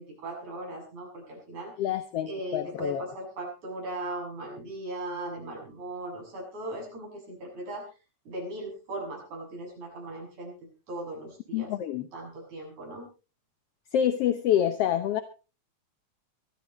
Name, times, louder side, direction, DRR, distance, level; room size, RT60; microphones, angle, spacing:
voice 1, 0.0-1.7 2.3-7.8 8.3-11.7 12.1-13.1, right 1 dB, 65° right, -1 dB, 8.6 m, -38 dB
voice 2, 1.8-3.0 11.5-12.1 13.9-15.2, left 10 dB, 65° left, 9 dB, 1.6 m, -27 dB
22.5 x 13.5 x 3.1 m, 0.33 s
omnidirectional pair, 3.6 m